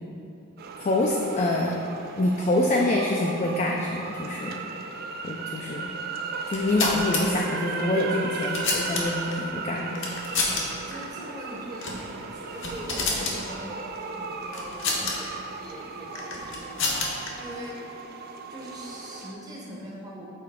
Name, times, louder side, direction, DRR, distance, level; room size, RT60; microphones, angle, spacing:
sound 1, 0.6-19.3, right 4 dB, 45° right, 0.3 m, -36 dB
voice 1, 0.8-1.8 2.2-4.6 5.2-5.9 6.5-10.0, left 1 dB, 30° left, -1 dB, 0.3 m, -25 dB
sound 2, 6.4-7.2 8.1-9.3 10.0-10.6 10.9-11.1 11.8-12.0 12.4-13.4 14.5-15.2 16.2-17.3, left 3 dB, 55° left, 0.9 m, -29 dB
voice 2, 10.4-17.8 18.5-20.3, equal, 15° right, -4 dB, 0.8 m, -41 dB
6.7 x 4.5 x 3.6 m, 2.8 s
head